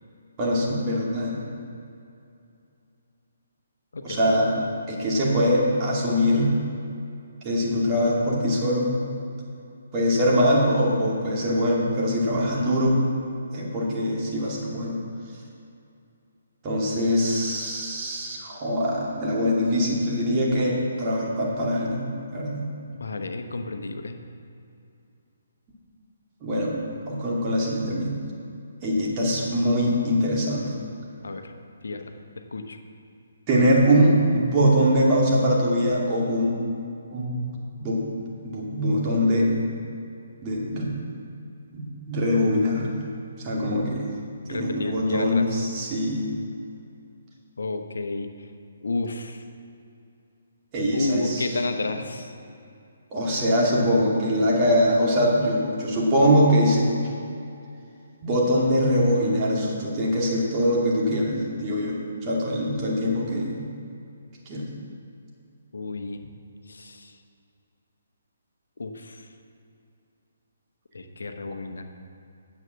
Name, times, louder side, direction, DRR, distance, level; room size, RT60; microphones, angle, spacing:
voice 1, 0.4-1.4 4.0-4.5 4.9-6.6 7.4-9.0 9.9-13.0 13.5-15.0 16.6-22.0 22.3-22.7 26.4-26.7 27.1-28.1 28.8-30.7 33.5-36.6 37.1-39.6 40.4-41.0 41.7-42.9 43.4-44.1 44.5-46.3 50.7-51.5 53.1-57.1 58.2-63.7 64.5-64.7, equal, 30° right, -4 dB, 2.4 m, -23 dB
voice 2, 3.9-4.4 12.5-12.8 23.0-24.2 31.2-31.5 31.8-32.0 32.4-32.8 44.4-45.6 47.6-48.3 48.8-49.4 50.9-52.3 65.7-66.2 66.7-67.2 68.8-69.3 70.9-71.8, left 3 dB, 75° left, 6 dB, 1.0 m, -31 dB
9.2 x 7.1 x 6.3 m, 2.6 s
figure-of-eight pair, 140°, 0 cm